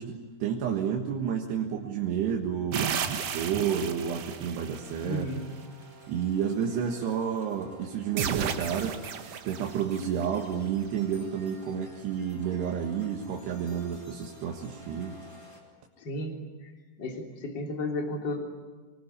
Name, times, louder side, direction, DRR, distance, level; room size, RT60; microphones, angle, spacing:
voice 1, 0.0-5.3 6.1-9.0 9.4-15.2, right 8 dB, 85° right, 0 dB, 3.7 m, -30 dB
sound 1, 2.7-5.0 8.2-10.2, right 8 dB, 65° right, 1.6 m, -32 dB
sound 2, 4.7-15.6, right 1 dB, 5° left, 4.5 m, -52 dB
voice 2, 5.0-5.4 16.0-16.3 16.6-16.7 17.0-18.4, left 1 dB, 30° left, 2 dB, 3.5 m, -33 dB
24.5 x 21.0 x 9.9 m, 1.3 s
omnidirectional pair, 4.6 m